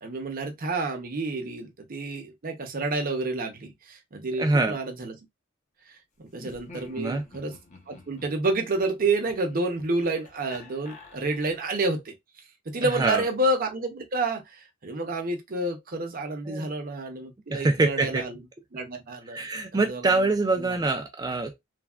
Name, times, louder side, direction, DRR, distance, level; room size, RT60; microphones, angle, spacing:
voice 1, 0.0-5.1 6.2-7.5 7.9-12.1 12.7-18.4 18.7-19.4 19.7-20.2 20.6-20.8, right 2 dB, 45° right, 0.7 m, -29 dB
voice 2, 4.4-4.8 7.0-7.2 12.8-13.2 16.5-16.7 17.5-18.2 19.3-21.7, right 3 dB, 20° right, 0.4 m, -25 dB
Laughter, 6.3-11.7, left 2 dB, 35° left, 0.7 m, -49 dB
3.3 x 2.2 x 2.3 m
head